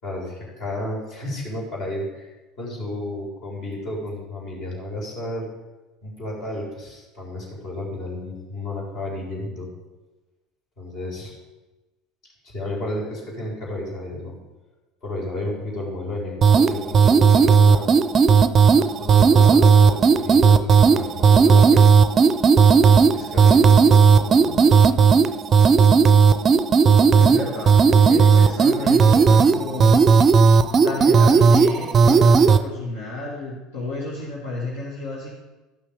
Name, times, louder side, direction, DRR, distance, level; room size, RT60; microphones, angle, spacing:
voice 1, 0.0-2.3 2.6-5.5 6.0-9.7 10.8-11.4 12.4-14.3 15.0-18.0 18.7-22.0 22.9-24.7, left 2 dB, 55° left, -2 dB, 3.9 m, -32 dB
sound 1, 16.4-32.6, right 5 dB, 40° right, 0.4 m, -15 dB
voice 2, 27.2-30.0 30.8-35.3, left 2 dB, 80° left, -6 dB, 1.9 m, -31 dB
12.5 x 5.9 x 5.1 m, 1.1 s
hypercardioid pair, 70°, 0 cm